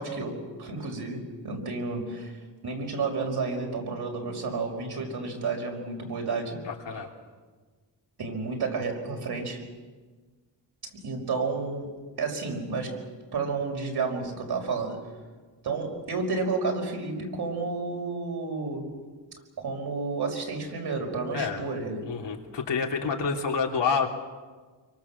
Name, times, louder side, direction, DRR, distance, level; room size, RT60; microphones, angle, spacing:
voice 1, 0.0-2.4 2.6-6.6 6.9-7.1 8.2-9.6 10.9-13.0 13.3-15.1 15.6-18.9 19.6-22.1, right 4 dB, 60° right, 1 dB, 5.4 m, -31 dB
voice 2, 6.6-7.1 21.3-21.7 22.0-24.1, left 5 dB, 75° left, 0 dB, 3.2 m, -28 dB
27.0 x 24.0 x 7.3 m, 1.4 s
wide cardioid pair, 135°, 43 cm